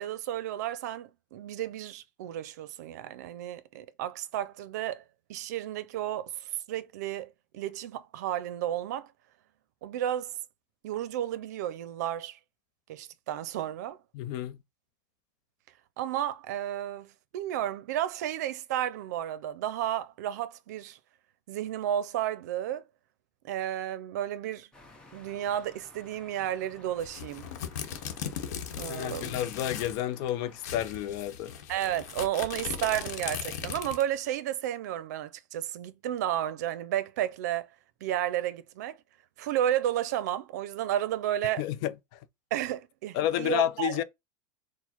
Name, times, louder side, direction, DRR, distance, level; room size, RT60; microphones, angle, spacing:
voice 1, 0.0-5.0 5.3-9.1 9.8-10.3 10.8-12.4 12.9-14.0 16.0-21.0 21.5-22.8 23.4-24.7 25.1-27.5 28.8-29.4 31.7-37.7 38.0-39.0 39.4-41.6 42.5-44.0, right 11 dB, 85° right, 0.5 m, -32 dB
voice 2, 14.1-14.6 28.9-31.5 41.6-41.9 43.1-44.0, left 11 dB, 50° left, 0.5 m, -30 dB
Heavy traffic Rome, 24.7-30.9, left 2 dB, 10° left, 0.9 m, -55 dB
sound 1, 27.0-30.0 30.3-30.4 30.6-34.2, left 8 dB, 85° left, 0.9 m, -38 dB
4.4 x 2.1 x 4.3 m
supercardioid pair, 150°, 9 cm